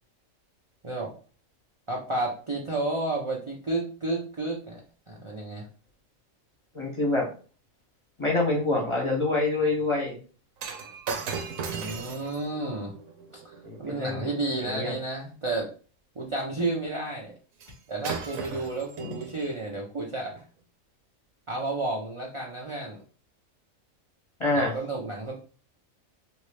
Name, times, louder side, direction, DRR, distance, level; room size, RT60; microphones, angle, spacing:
voice 1, 1.9-4.8 5.1-5.6 11.7-12.9 13.3-15.7 16.2-17.3 17.9-20.3 21.5-23.0 24.5-25.3, right 2 dB, 40° right, -3 dB, 0.4 m, -31 dB
voice 2, 6.7-7.3 8.2-10.2 13.6-14.2 14.6-15.0 19.0-19.1 24.4-24.7, left 2 dB, 25° left, -2 dB, 0.8 m, -26 dB
Shatter, 10.6-15.0 17.6-17.8 18.0-19.6 20.3-20.4, right 5 dB, 80° right, 1.1 m, -37 dB
3.0 x 2.6 x 3.3 m, 0.38 s
omnidirectional pair, 1.4 m